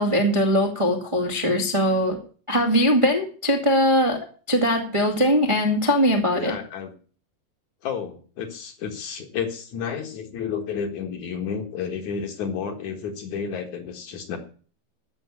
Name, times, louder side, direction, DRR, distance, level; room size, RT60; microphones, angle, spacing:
voice 1, 0.0-2.2 2.5-6.5, equal, 20° right, 1 dB, 0.8 m, -21 dB
voice 2, 6.3-6.9 7.8-14.4, left 6 dB, 55° left, 4 dB, 2.6 m, -31 dB
14.5 x 6.5 x 8.3 m, 0.41 s
omnidirectional pair, 4.4 m